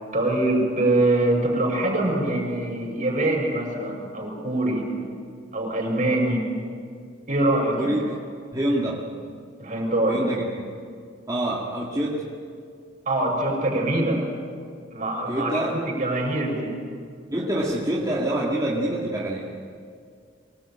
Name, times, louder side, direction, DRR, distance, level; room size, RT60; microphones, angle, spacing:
voice 1, 0.1-4.9 5.5-6.5 7.3-8.0 9.6-10.2 13.0-14.3 14.9-15.6 15.8-16.7, right 1 dB, 40° right, 0 dB, 6.5 m, -24 dB
voice 2, 7.8-8.1 8.5-9.1 10.1-10.5 11.3-12.3 15.3-15.8 17.3-19.5, right 1 dB, 20° right, -4 dB, 2.2 m, -26 dB
24.0 x 19.0 x 8.9 m, 2.2 s
head